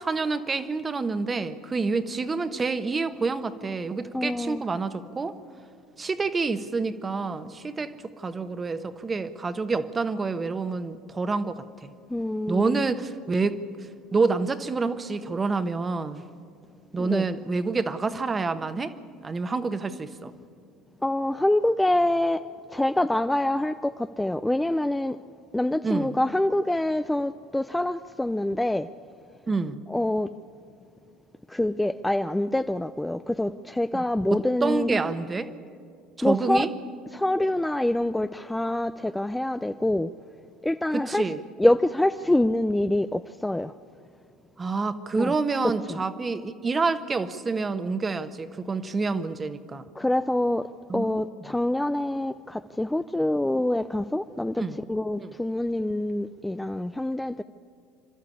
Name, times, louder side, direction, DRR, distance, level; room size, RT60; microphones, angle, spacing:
voice 1, 0.0-5.4 6.0-11.9 12.5-13.6 14.1-16.2 16.9-18.9 19.2-20.3 25.8-26.2 29.5-29.8 33.9-34.0 34.3-35.5 36.2-36.7 40.9-41.4 44.6-49.8 50.9-51.2 54.6-54.8 55.2-55.3, right 4 dB, 25° right, 1.2 m, -28 dB
voice 2, 4.1-4.6 12.1-12.9 17.0-17.3 21.0-22.5 22.7-25.2 25.5-28.9 29.9-30.3 31.5-35.0 36.2-36.7 37.1-40.1 40.6-41.3 41.6-43.7 45.1-45.3 45.9-46.0 50.0-50.7 50.9-57.4, left 1 dB, 5° left, 0.4 m, -25 dB
27.5 x 12.5 x 8.5 m
hypercardioid pair, 85°, 0 cm